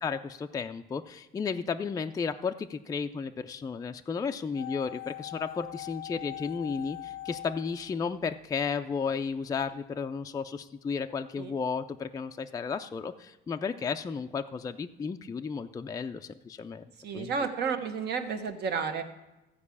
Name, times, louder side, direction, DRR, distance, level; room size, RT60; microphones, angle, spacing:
voice 1, 0.0-16.8 17.1-17.3, left 5 dB, 20° left, 6 dB, 0.4 m, -33 dB
sound 1, 4.5-8.7 8.9-9.0, left 14 dB, 75° left, 0.5 m, -42 dB
voice 2, 17.0-19.0, right 6 dB, 60° right, 6 dB, 1.3 m, -31 dB
14.0 x 4.8 x 8.4 m, 1.0 s
cardioid pair, 125°, 19 cm